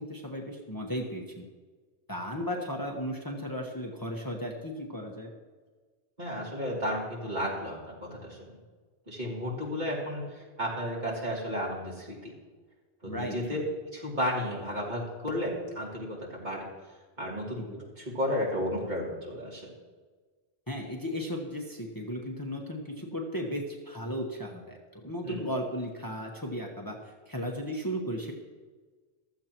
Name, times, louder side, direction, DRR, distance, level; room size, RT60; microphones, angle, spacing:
voice 1, 0.0-1.5 2.1-5.3 13.0-13.6 17.6-17.8 20.7-28.3, equal, 20° left, 0 dB, 1.3 m, -35 dB
voice 2, 6.2-8.5 9.1-12.3 13.0-13.6 13.9-16.7 17.2-19.7 25.2-25.4, equal, 45° right, -4 dB, 3.2 m, -33 dB
15.0 x 13.5 x 3.0 m, 1.4 s
omnidirectional pair, 1.1 m